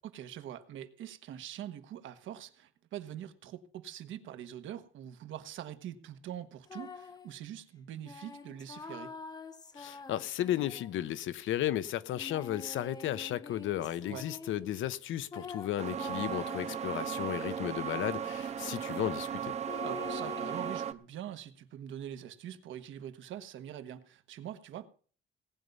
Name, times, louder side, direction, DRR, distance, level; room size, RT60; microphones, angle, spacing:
voice 1, 0.0-9.2 14.1-14.3 19.8-24.9, right 10 dB, 90° right, 1.3 m, -44 dB
sound 1, 6.7-7.3 8.0-11.3 12.1-14.7 15.3-18.4 19.7-20.8, left 4 dB, 20° left, 0.9 m, -46 dB
voice 2, 9.8-19.5, left 12 dB, 85° left, 0.9 m, -34 dB
sound 2, 15.8-20.9, right 8 dB, 35° right, 0.6 m, -36 dB
18.0 x 9.2 x 5.4 m
cardioid pair, 170°, 20 cm